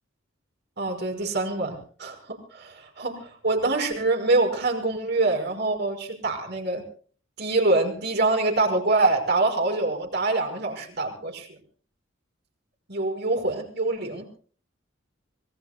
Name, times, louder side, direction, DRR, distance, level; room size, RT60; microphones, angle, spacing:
voice 1, 0.8-6.8 7.4-11.5 12.9-14.3, right 2 dB, 55° right, 3 dB, 5.6 m, -25 dB
25.5 x 22.0 x 2.3 m, 0.43 s
head